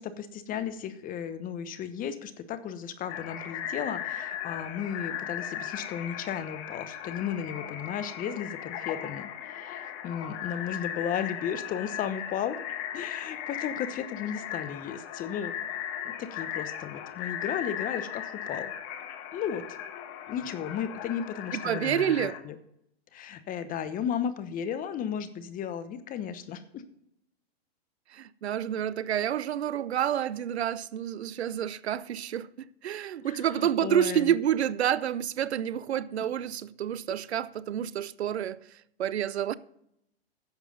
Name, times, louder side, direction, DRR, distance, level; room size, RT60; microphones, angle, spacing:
voice 1, 0.0-12.6 12.9-15.5 16.0-18.7 19.3-19.6 20.3-22.6 23.1-26.8 33.2-34.3, left 8 dB, 25° left, 1.0 m, -34 dB
sound 1, 3.1-22.4, left 10 dB, 40° left, 1.4 m, -37 dB
voice 2, 21.5-22.3 28.1-38.6 39.0-39.5, right 10 dB, 85° right, 0.7 m, -29 dB
10.5 x 7.5 x 5.4 m
hypercardioid pair, 115°, 32 cm